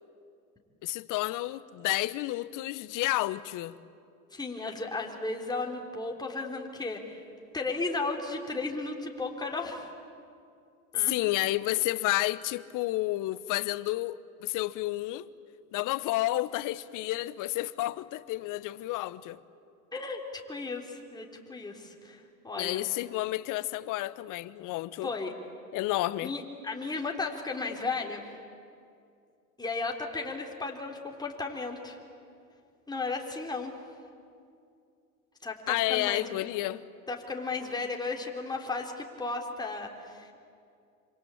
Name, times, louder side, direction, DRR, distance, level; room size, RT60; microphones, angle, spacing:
voice 1, 0.8-3.8 11.0-15.3 15.7-19.4 22.6-25.1 25.7-26.3 35.7-36.8, left 17 dB, 45° left, 1.0 m, -30 dB
voice 2, 4.3-7.2 7.5-9.9 10.9-11.1 19.9-22.9 25.0-25.3 26.2-28.2 29.6-32.0 32.9-33.7 35.4-36.3 37.1-40.3, left 3 dB, 10° left, 3.7 m, -35 dB
27.0 x 26.0 x 8.6 m
hypercardioid pair, 85°, 43 cm